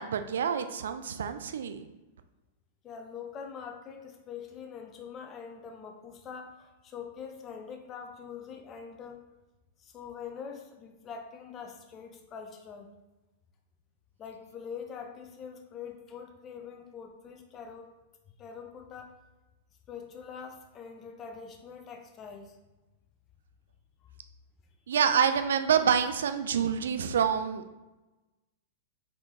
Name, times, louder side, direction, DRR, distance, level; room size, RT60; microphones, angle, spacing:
voice 1, 0.0-1.9 24.9-27.6, right 7 dB, 70° right, 9 dB, 0.3 m, -27 dB
voice 2, 2.8-9.2 9.8-12.9 14.2-17.9 18.4-19.2 19.9-22.6 24.0-24.1, left 6 dB, 30° left, 4 dB, 0.6 m, -44 dB
4.0 x 3.6 x 3.0 m, 1.1 s
figure-of-eight pair, 100°, 0 cm